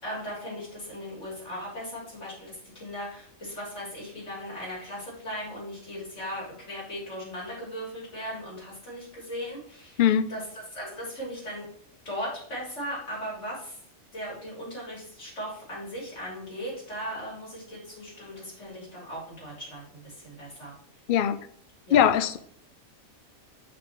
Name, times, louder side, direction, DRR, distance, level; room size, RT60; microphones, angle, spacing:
voice 1, 0.0-10.0 10.3-11.6 12.1-13.8 14.1-20.7 21.9-22.0, equal, 55° left, -5 dB, 3.6 m, -38 dB
voice 2, 21.9-22.4, left 9 dB, 75° left, 11 dB, 0.4 m, -21 dB
7.4 x 6.0 x 3.0 m, 0.63 s
omnidirectional pair, 1.4 m